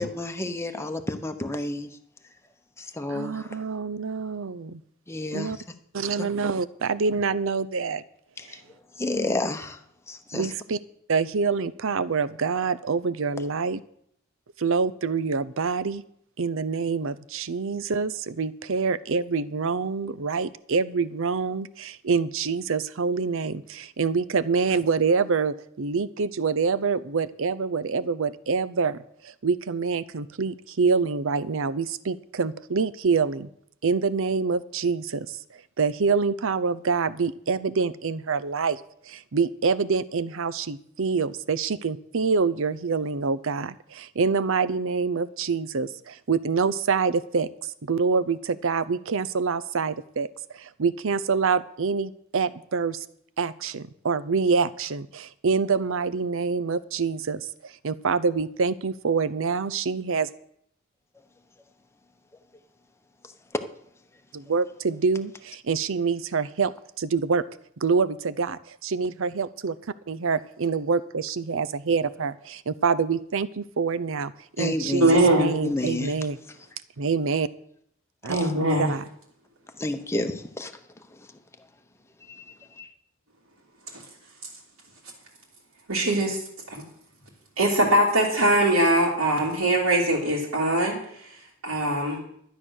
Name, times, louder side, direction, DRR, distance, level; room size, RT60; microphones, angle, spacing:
voice 1, 0.0-1.9 2.8-3.6 5.1-5.7 8.4-8.6 9.0-9.8 10.1-10.5 74.6-75.2 75.6-76.2 78.3-78.5 79.8-80.7 81.1-81.3 82.3-82.9, left 2 dB, 15° left, 0.9 m, -30 dB
voice 2, 3.1-4.8 5.3-5.6 5.9-8.0 10.3-10.8 11.1-13.8 14.6-16.0 16.4-29.0 29.2-33.5 33.8-35.4 35.8-38.8 39.1-47.5 47.8-50.3 50.5-53.0 53.4-60.3 64.3-66.7 67.0-67.4 67.8-69.8 70.1-74.3 74.6-75.0 75.3-76.4 77.0-77.5 78.2-79.0, right 5 dB, 65° right, 0.6 m, -26 dB
voice 3, 75.0-75.5 78.3-78.9 85.9-86.4 86.7-86.8 87.6-91.0 91.6-92.2, right 1 dB, 85° right, 2.9 m, -21 dB
12.5 x 8.9 x 6.4 m
head